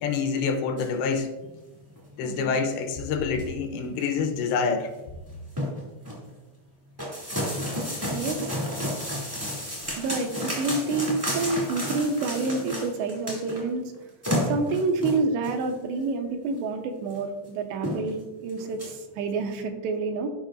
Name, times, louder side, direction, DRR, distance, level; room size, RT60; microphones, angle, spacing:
voice 1, 0.0-1.3 2.2-4.9, left 5 dB, 85° left, 6 dB, 2.9 m, -27 dB
sound 1, 0.8-0.9 1.4-1.6 1.9-2.0 2.6-2.7 3.1-3.6 4.0-4.1 4.4-4.5 4.8-5.0 5.3-6.2 7.0-13.7 13.9-14.0 14.2-15.6 16.5-16.6 17.1-17.2 17.4-17.5 17.8-18.2 18.5-18.9, equal, 20° right, 0.6 m, -31 dB
voice 2, 2.2-2.6 8.1-8.4 10.0-13.8 14.4-18.2 18.4-20.3, right 3 dB, 85° right, 5 dB, 2.9 m, -28 dB
13.0 x 5.4 x 2.5 m, 1.1 s
omnidirectional pair, 5.0 m